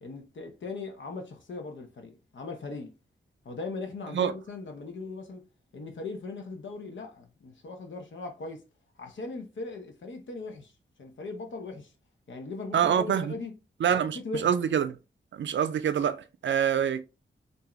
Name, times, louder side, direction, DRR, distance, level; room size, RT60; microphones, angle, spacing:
voice 1, 0.0-2.9 3.4-5.4 5.7-8.6 9.0-10.7 11.0-11.9 12.3-13.5 13.9-14.5, left 3 dB, 75° left, 0.9 m, -39 dB
voice 2, 12.7-13.3 13.8-15.0 15.3-17.0, right 8 dB, 75° right, 0.5 m, -26 dB
3.4 x 2.8 x 3.0 m
cardioid pair, 70°, 20 cm